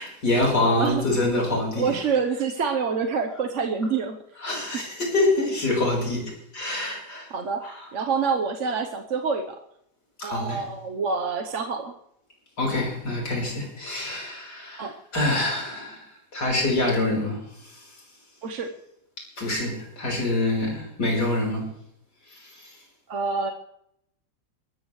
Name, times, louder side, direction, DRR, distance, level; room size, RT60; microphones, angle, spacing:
voice 1, 0.0-2.0 4.4-7.3 7.6-7.9 10.2-10.6 12.6-17.8 19.4-21.7 22.3-22.7, left 2 dB, 60° left, -1 dB, 5.2 m, -26 dB
voice 2, 0.6-1.0 1.8-4.2 7.3-7.6 7.9-9.6 10.2-11.9 14.8-14.9 18.4-18.7 23.1-23.5, right 5 dB, 50° right, 4 dB, 1.1 m, -26 dB
22.5 x 13.5 x 3.2 m, 0.76 s
omnidirectional pair, 2.0 m